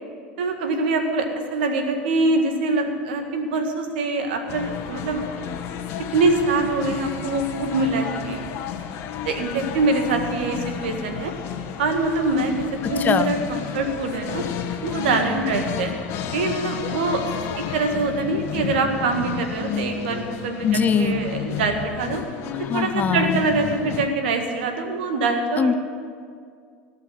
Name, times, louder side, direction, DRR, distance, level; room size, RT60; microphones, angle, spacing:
voice 1, 0.4-5.4 6.1-8.4 9.3-11.3 11.8-14.4 14.8-15.9 16.3-17.2 17.6-20.7 20.9-22.2 22.7-25.8, right 3 dB, 75° right, 4 dB, 1.8 m, -24 dB
sound 1, 4.5-24.1, left 8 dB, 55° left, 1.3 m, -32 dB
voice 2, 12.8-13.3 20.6-21.2 22.5-23.4 25.6-25.7, left 6 dB, 30° left, 13 dB, 0.6 m, -22 dB
17.0 x 5.8 x 9.9 m, 2.1 s
hypercardioid pair, 90°, 5 cm